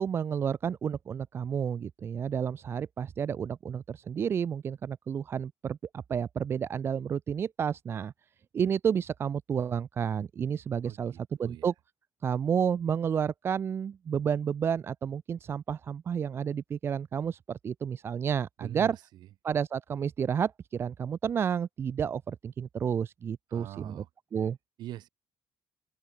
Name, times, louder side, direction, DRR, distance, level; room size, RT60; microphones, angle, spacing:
voice 1, 0.0-8.1 8.5-11.7 12.2-19.0 19.4-24.0 24.3-24.6, right 7 dB, 30° right, 0.7 m, -31 dB
voice 2, 10.8-11.7 18.6-19.0 23.5-24.1 24.4-24.5 24.8-25.1, right 14 dB, 70° right, 4.4 m, -43 dB
open air
cardioid pair, 170°, 8 cm